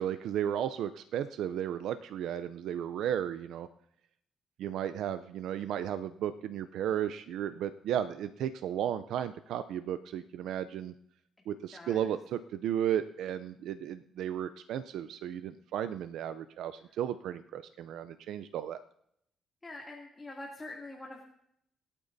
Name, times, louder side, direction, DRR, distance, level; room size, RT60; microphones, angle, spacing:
voice 1, 0.0-3.7 4.6-10.9 11.5-18.8, right 10 dB, 80° right, 11 dB, 0.5 m, -34 dB
voice 2, 19.6-21.2, left 2 dB, 20° left, -2 dB, 2.5 m, -44 dB
26.5 x 8.9 x 2.7 m, 0.73 s
cardioid pair, 90°, 0 cm